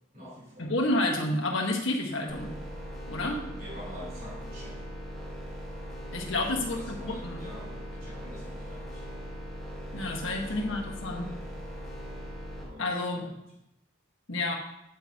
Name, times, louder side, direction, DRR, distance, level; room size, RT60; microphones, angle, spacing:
voice 1, 0.0-0.7 3.2-4.9 6.3-9.1 10.0-11.3 12.6-13.4, equal, 45° right, -5 dB, 3.5 m, -47 dB
voice 2, 0.6-2.6 3.1-3.4 6.1-7.4 9.9-11.3 12.8-13.3 14.3-14.6, left 2 dB, 75° left, 1 dB, 1.4 m, -30 dB
sound 1, 2.3-12.6, equal, ahead, 2.1 m, -40 dB
9.2 x 8.7 x 2.9 m, 0.84 s
head